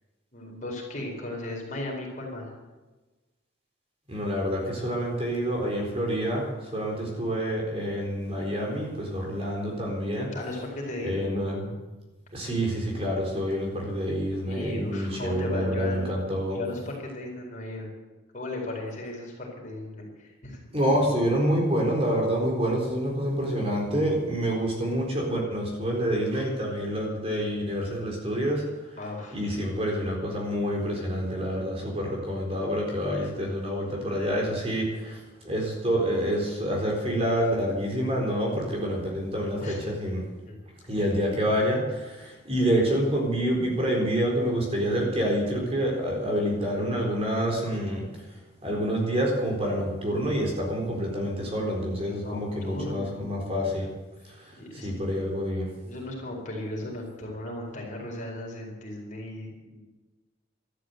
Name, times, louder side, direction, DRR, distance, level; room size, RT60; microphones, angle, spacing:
voice 1, 0.3-2.5 10.3-11.3 14.4-16.1 16.5-17.9 18.3-20.6 29.0-29.4 39.6-40.6 52.0-53.3 54.6-55.0 55.8-59.8, left 1 dB, 40° left, -1 dB, 4.4 m, -36 dB
voice 2, 4.1-10.3 11.0-11.7 12.3-16.6 20.7-28.6 29.3-40.2 40.9-48.1 48.6-53.9 54.3-54.6 54.8-55.7, equal, 30° right, -1 dB, 4.1 m, -27 dB
13.0 x 12.0 x 8.0 m, 1.2 s
head